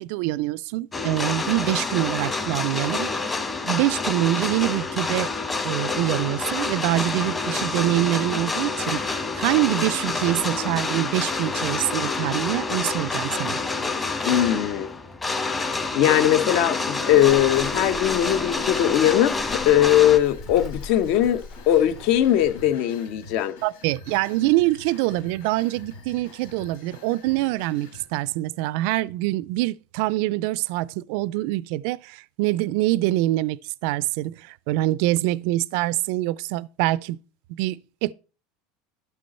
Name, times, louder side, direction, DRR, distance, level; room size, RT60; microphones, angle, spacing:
voice 1, 0.0-3.1 3.6-5.3 5.6-13.6 23.6-37.2 37.5-38.1, right 17 dB, 65° right, 0.3 m, -25 dB
sound 1, 0.9-20.2, left 3 dB, 15° left, 1.1 m, -28 dB
voice 2, 14.2-14.9 15.9-23.5, left 11 dB, 60° left, 0.9 m, -20 dB
Walk footsteps, 17.1-22.6, left 5 dB, 40° left, 1.2 m, -41 dB
sound 2, 20.1-28.1, left 3 dB, 90° left, 4.8 m, -46 dB
12.0 x 5.4 x 4.2 m
supercardioid pair, 135°, 0 cm